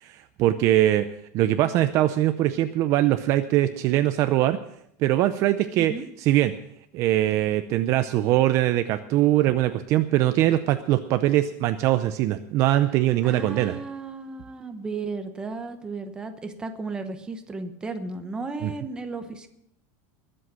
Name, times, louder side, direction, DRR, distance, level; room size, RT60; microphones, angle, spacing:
voice 1, 0.0-1.1 1.3-4.6 5.0-5.9 6.2-6.5 6.9-13.8 18.6-18.7, right 14 dB, 35° right, 9 dB, 0.6 m, -22 dB
voice 2, 13.2-19.5, right 3 dB, 10° right, 6 dB, 1.0 m, -34 dB
21.0 x 7.8 x 6.1 m, 0.75 s
supercardioid pair, 170°, 9 cm